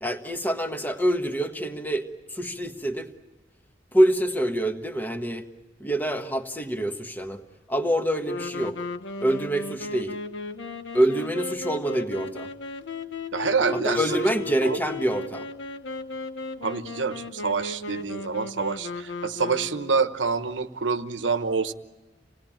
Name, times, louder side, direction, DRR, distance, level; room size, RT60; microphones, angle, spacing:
voice 1, 0.0-3.1 3.9-5.5 5.8-7.4 7.7-8.8 9.2-10.2 10.9-12.5 13.7-15.5, right 1 dB, 10° left, 6 dB, 1.4 m, -26 dB
sound 1, 8.2-20.1, left 3 dB, 85° left, 1.2 m, -35 dB
voice 2, 13.3-14.0 14.7-14.8 16.6-21.7, right 5 dB, 85° right, 10 dB, 1.1 m, -27 dB
27.5 x 19.0 x 8.9 m, 1.2 s
head